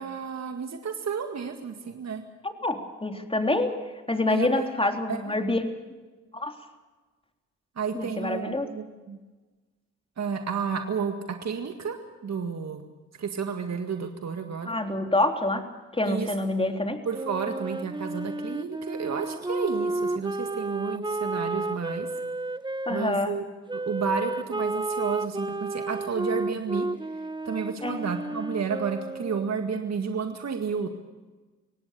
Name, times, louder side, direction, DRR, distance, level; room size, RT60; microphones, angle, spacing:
voice 1, 0.0-2.2 4.3-4.6 5.1-5.2 7.8-9.2 10.2-11.2 11.4-12.0 12.2-12.8 13.2-14.7 16.0-16.3 17.1-22.1 22.9-23.4 23.7-26.9 27.5-30.9, right 6 dB, 55° right, 5 dB, 2.0 m, -31 dB
voice 2, 2.4-3.7 4.1-5.7 6.3-6.5 7.9-8.7 14.7-15.6 15.9-17.0 22.9-23.3 27.8-28.0, left 2 dB, 15° left, 5 dB, 3.6 m, -26 dB
Wind instrument woodwind instrument, 17.1-23.0 23.7-29.5, right 2 dB, 15° right, 1.1 m, -32 dB
25.5 x 18.0 x 6.8 m, 1.3 s
supercardioid pair, 50°, 32 cm